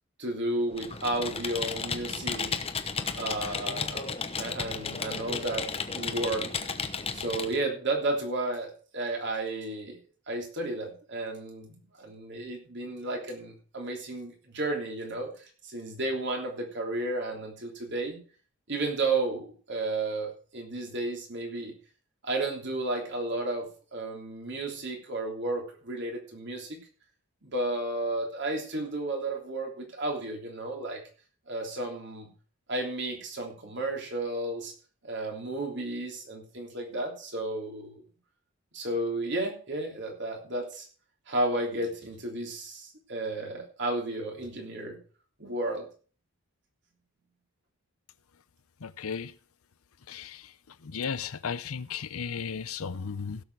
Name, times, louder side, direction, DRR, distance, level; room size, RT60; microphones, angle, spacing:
voice 1, 0.2-2.5 3.1-4.1 4.4-6.5 7.1-10.0 10.3-18.2 18.7-21.7 22.2-26.8 27.4-31.0 31.5-32.3 32.7-34.7 35.0-38.0 38.7-40.9 41.3-45.0 45.4-45.9, right 2 dB, 50° right, 3.3 m, -33 dB
Computer keyboard, 0.7-7.6, left 5 dB, 25° left, 0.9 m, -34 dB
voice 2, 48.8-49.3 50.1-50.4 50.8-53.4, left 6 dB, 75° left, 0.7 m, -35 dB
16.0 x 7.1 x 4.8 m
head